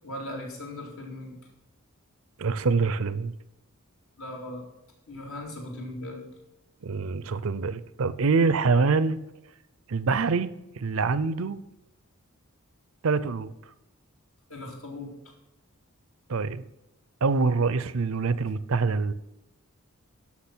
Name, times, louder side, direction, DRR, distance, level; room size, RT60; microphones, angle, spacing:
voice 1, 0.0-1.4 4.2-4.6 5.1-6.3 14.5-15.1, left 1 dB, 70° left, -1 dB, 2.9 m, -38 dB
voice 2, 2.4-3.3 6.8-9.2 9.9-11.6 13.0-13.5 16.3-16.6 17.2-19.1, right 4 dB, 65° right, 16 dB, 0.5 m, -25 dB
12.0 x 6.1 x 6.1 m, 0.92 s
head